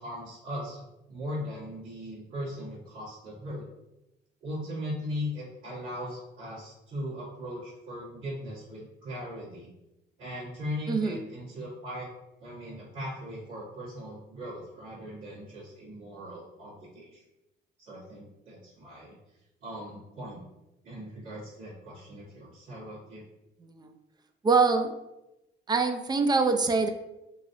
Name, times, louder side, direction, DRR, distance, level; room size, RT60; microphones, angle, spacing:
voice 1, 0.0-3.7 4.4-9.7 10.2-12.1 12.4-17.2 17.8-19.1 19.6-20.4 20.8-23.2, equal, 70° right, -13 dB, 1.5 m, -39 dB
voice 2, 10.9-11.2 23.6-23.9 24.4-24.9 25.7-26.9, right 4 dB, 20° right, 7 dB, 0.3 m, -24 dB
3.0 x 2.6 x 2.6 m, 0.93 s
cardioid pair, 85°, 21 cm